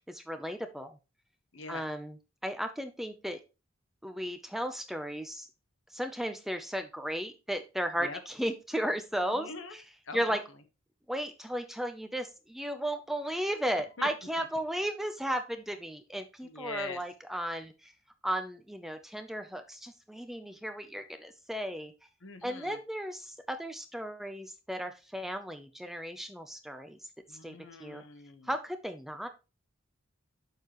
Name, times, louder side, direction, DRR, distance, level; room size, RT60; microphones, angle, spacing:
voice 1, 0.1-1.0 1.7-3.4 4.0-5.5 5.9-9.8 10.1-10.4 11.1-17.9 18.2-21.9 22.4-27.0 27.4-28.0 28.5-29.3, equal, ahead, 7 dB, 0.5 m, -35 dB
voice 2, 1.5-1.8 7.9-8.2 9.3-9.8 10.0-10.4 14.0-14.1 14.4-14.5 16.4-17.0 22.2-22.8 27.3-28.5, left 4 dB, 70° left, 8 dB, 1.1 m, -43 dB
6.8 x 6.5 x 3.0 m, 0.28 s
head